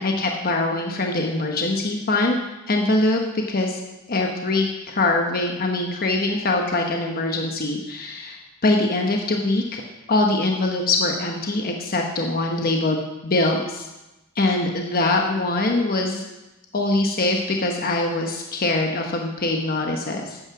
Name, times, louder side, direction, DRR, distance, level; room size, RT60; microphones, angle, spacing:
voice 1, 0.0-2.4 2.7-3.2 3.5-3.8 4.1-9.8 10.1-13.9 14.4-16.2 16.7-20.4, left 2 dB, 45° left, 2 dB, 1.0 m, -23 dB
9.4 x 8.9 x 6.0 m, 1.0 s
head